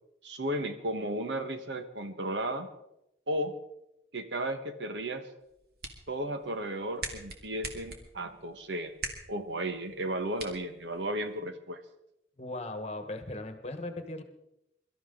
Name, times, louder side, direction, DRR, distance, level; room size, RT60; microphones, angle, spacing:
voice 1, 0.2-2.7 3.3-3.5 4.1-5.3 6.1-9.0 9.3-11.8, right 1 dB, 90° right, 8 dB, 1.4 m, -34 dB
sound 1, 5.4-11.4, right 3 dB, 60° right, 2.2 m, -44 dB
voice 2, 12.4-14.2, left 2 dB, 35° left, 8 dB, 1.3 m, -38 dB
23.5 x 13.0 x 3.9 m, 0.85 s
head